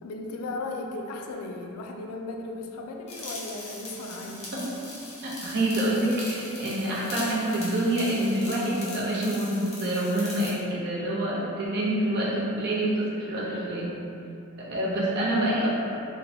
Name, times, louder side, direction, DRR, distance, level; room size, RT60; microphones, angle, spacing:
voice 1, 0.0-4.5, left 2 dB, 80° left, 1 dB, 0.3 m, -36 dB
sound 1, 3.1-10.6, left 2 dB, 30° left, 0.5 m, -40 dB
voice 2, 5.2-13.9 14.7-15.7, right 1 dB, 50° right, -6 dB, 0.6 m, -27 dB
2.8 x 2.1 x 2.7 m, 2.7 s
head